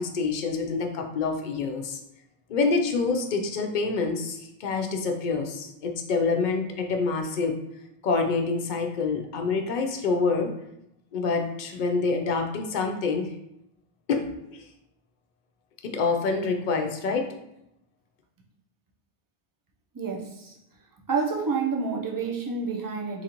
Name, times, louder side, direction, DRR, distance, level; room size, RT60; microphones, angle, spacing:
voice 1, 0.0-2.0 2.5-7.6 8.0-10.5 11.1-13.3 14.1-14.7 15.8-17.3, left 4 dB, 55° left, 4 dB, 0.6 m, -27 dB
voice 2, 19.9-20.6 21.1-23.2, right 5 dB, 30° right, -1 dB, 0.4 m, -29 dB
3.8 x 3.1 x 2.9 m, 0.83 s
omnidirectional pair, 1.0 m